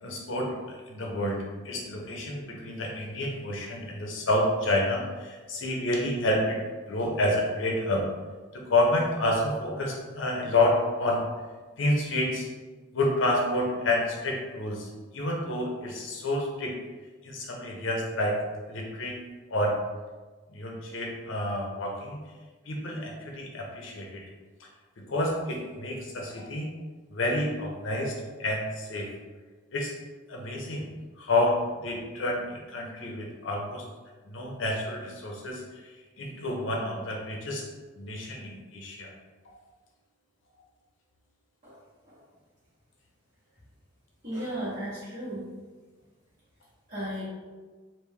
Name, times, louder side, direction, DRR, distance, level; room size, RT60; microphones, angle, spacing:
voice 1, 0.0-6.6 6.9-8.0 8.5-11.2 11.8-12.5 12.9-16.7 17.2-18.4 18.7-19.2 19.5-19.8 20.5-22.2 22.7-24.2 24.6-24.7 25.0-26.7 27.1-29.1 29.7-29.9 30.3-30.9 31.2-33.8 34.2-35.6 36.2-37.6 37.9-39.1 39.5-39.6, left 1 dB, 70° left, 0 dB, 0.6 m, -29 dB
voice 2, 44.2-45.4 46.9-47.2, right 1 dB, 40° right, -13 dB, 1.2 m, -35 dB
3.3 x 2.5 x 3.5 m, 1.3 s
head